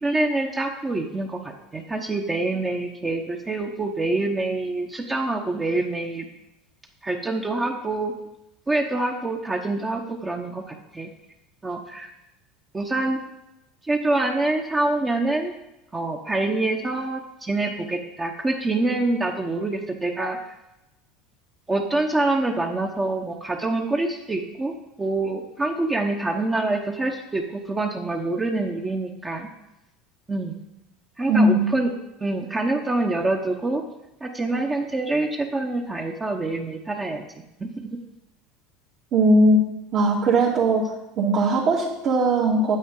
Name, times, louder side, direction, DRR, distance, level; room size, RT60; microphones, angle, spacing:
voice 1, 0.0-6.3 7.0-8.1 8.7-11.1 11.6-12.1 12.7-13.2 13.9-15.5 15.9-20.4 21.7-29.5 30.3-30.6 31.2-31.9 32.2-33.8 34.2-37.2 37.6-37.7, right 2 dB, 20° right, 1 dB, 1.0 m, -26 dB
voice 2, 31.3-31.7 39.1-39.7 39.9-40.9 41.2-42.8, right 1 dB, 50° right, -6 dB, 2.1 m, -19 dB
9.2 x 7.9 x 3.9 m, 0.91 s
hypercardioid pair, 95°, 0 cm